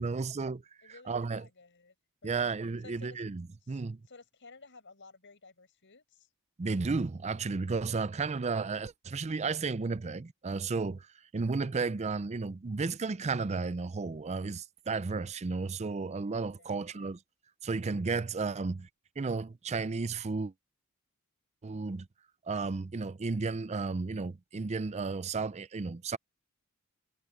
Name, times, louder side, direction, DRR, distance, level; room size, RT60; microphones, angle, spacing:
voice 1, 0.0-0.6 1.1-1.4 2.2-4.0 6.6-11.1 11.3-17.2 17.6-18.9 19.2-20.5 21.6-22.1 22.5-26.2, right 4 dB, 30° right, 0.5 m, -33 dB
voice 2, 0.8-1.9 2.2-2.5 2.8-3.2 3.6-6.3 16.6-17.1, left 3 dB, 55° left, 6.2 m, -55 dB
head